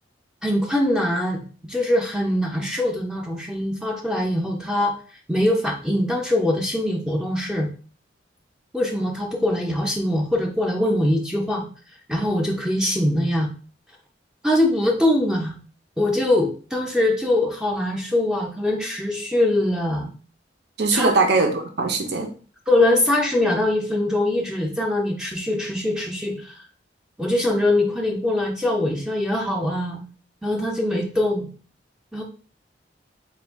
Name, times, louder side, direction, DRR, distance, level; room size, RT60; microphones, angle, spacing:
voice 1, 0.4-1.4 1.7-4.9 5.3-7.7 8.7-11.6 12.1-13.5 14.4-15.6 16.0-20.1 20.9-21.1 22.7-26.6 27.2-30.0 30.4-31.5 32.1-32.2, left 1 dB, 5° right, 0 dB, 0.5 m, -22 dB
voice 2, 20.8-22.3, right 3 dB, 65° right, 4 dB, 0.6 m, -21 dB
4.2 x 2.3 x 3.4 m, 0.40 s
head